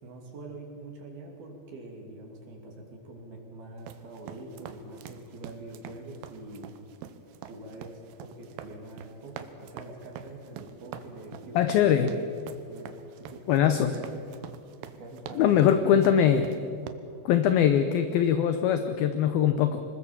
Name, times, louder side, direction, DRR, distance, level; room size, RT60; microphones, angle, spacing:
voice 1, 0.0-6.7 7.5-12.9 13.3-14.2 15.0-16.9, right 2 dB, 60° right, 1 dB, 4.6 m, -44 dB
sound 1, 3.8-16.9, right 9 dB, 75° right, 2.9 m, -45 dB
voice 2, 11.6-12.1 13.5-13.9 15.4-16.4 17.3-19.8, left 9 dB, 75° left, 8 dB, 2.3 m, -22 dB
26.0 x 20.5 x 7.4 m, 2.4 s
omnidirectional pair, 5.3 m